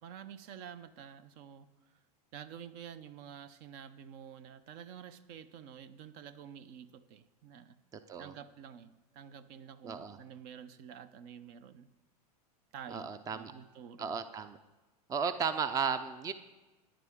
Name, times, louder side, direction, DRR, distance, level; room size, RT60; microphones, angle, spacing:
voice 1, 0.0-1.7 2.3-7.8 8.2-11.9 12.7-14.2, right 8 dB, 50° right, 14 dB, 0.7 m, -49 dB
voice 2, 7.9-8.3 9.8-10.2 12.9-13.5 14.0-14.6 15.1-16.3, right 6 dB, 15° right, 12 dB, 0.5 m, -34 dB
14.0 x 10.0 x 3.6 m, 1.2 s
hypercardioid pair, 110°, 20 cm